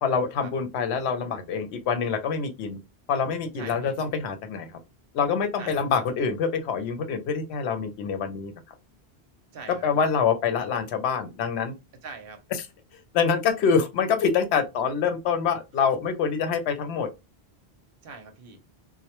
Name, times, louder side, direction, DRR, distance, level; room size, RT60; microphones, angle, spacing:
voice 1, 0.0-2.8 3.1-4.8 5.1-8.5 9.8-11.7 12.9-17.1, left 6 dB, 80° left, 0.8 m, -26 dB
voice 2, 3.6-4.0 5.6-6.0 9.5-10.1 12.0-12.4 18.0-18.6, right 4 dB, 65° right, 0.7 m, -43 dB
2.1 x 2.1 x 2.8 m
omnidirectional pair, 1.1 m